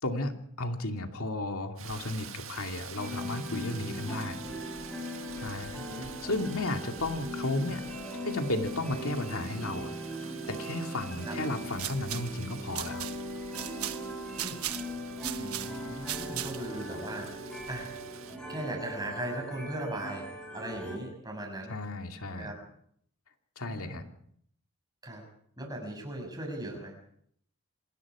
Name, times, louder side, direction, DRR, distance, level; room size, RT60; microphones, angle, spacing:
voice 1, 0.0-4.4 5.4-7.8 8.2-9.9 10.5-13.1 21.7-22.5 23.6-24.0, left 2 dB, 85° left, 4 dB, 2.4 m, -34 dB
Rain, 1.8-18.4, right 8 dB, 70° right, 1.7 m, -48 dB
sound 1, 2.9-21.0, equal, 5° left, 4.9 m, -40 dB
voice 2, 5.7-6.1 11.3-11.4 14.4-14.6 15.3-17.3 17.7-20.3 20.5-21.7 22.3-22.6 23.6-24.0 25.0-25.2 25.6-27.2, right 1 dB, 20° right, 1 dB, 7.0 m, -38 dB
sound 2, 11.6-16.8, right 12 dB, 90° right, 1.3 m, -39 dB
27.5 x 20.0 x 4.9 m, 0.67 s
head